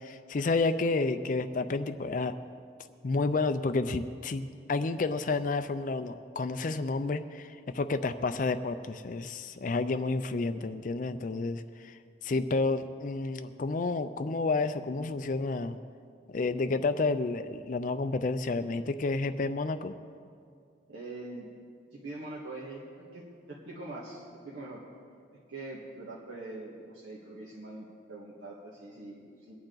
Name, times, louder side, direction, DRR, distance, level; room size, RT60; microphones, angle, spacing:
voice 1, 0.0-2.3 3.0-15.8 16.3-19.9, left 3 dB, 40° left, 10 dB, 0.4 m, -30 dB
voice 2, 20.9-21.5 21.9-22.8 23.1-24.8 25.5-29.5, right 2 dB, 85° right, -5 dB, 1.7 m, -43 dB
22.0 x 9.0 x 3.9 m, 2.3 s
head